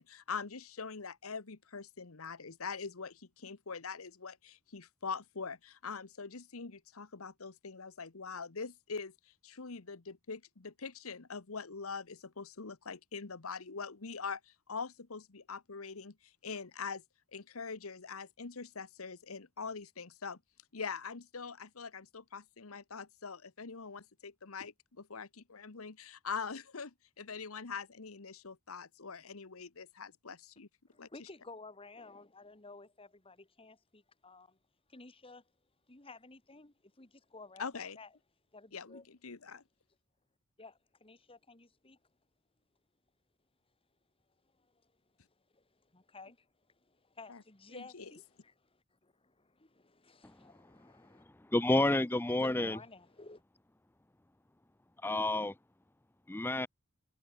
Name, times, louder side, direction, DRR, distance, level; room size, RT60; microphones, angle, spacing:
voice 1, 0.0-9.1 9.4-17.0 17.3-20.4 20.7-30.7 31.0-31.3 37.6-38.0 38.7-39.6 47.3-47.4 47.7-48.1, left 5 dB, 80° left, 1.2 m, -43 dB
voice 2, 30.9-34.6 34.9-35.4 35.9-38.1 38.5-39.1 40.6-42.0 44.6-44.9 45.3-51.2 52.4-53.4, left 3 dB, 25° left, 1.8 m, -54 dB
voice 3, 51.5-52.8 55.0-55.5 56.3-56.7, left 2 dB, 10° left, 0.6 m, -29 dB
head